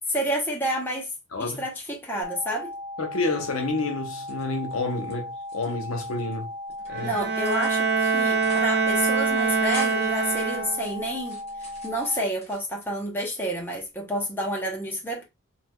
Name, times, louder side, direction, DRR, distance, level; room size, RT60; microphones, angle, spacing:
voice 1, 0.1-1.1 1.4-2.7 7.0-11.4 11.8-15.2, equal, 10° left, 0.7 m, -29 dB
voice 2, 1.3-1.6 3.0-6.5 6.9-7.1, left 3 dB, 85° left, 0.8 m, -29 dB
sound 1, 2.2-12.2, left 1 dB, 55° left, 1.0 m, -37 dB
sound 2, 4.3-5.1 5.4-6.3 6.7-7.0 7.4-8.0 8.3-8.7 9.0-9.1 9.4-10.2 10.7-12.9 13.3-13.9, left 1 dB, 30° left, 1.1 m, -44 dB
Bowed string instrument, 6.9-11.0, right 4 dB, 50° right, 0.5 m, -24 dB
3.2 x 2.8 x 2.2 m
head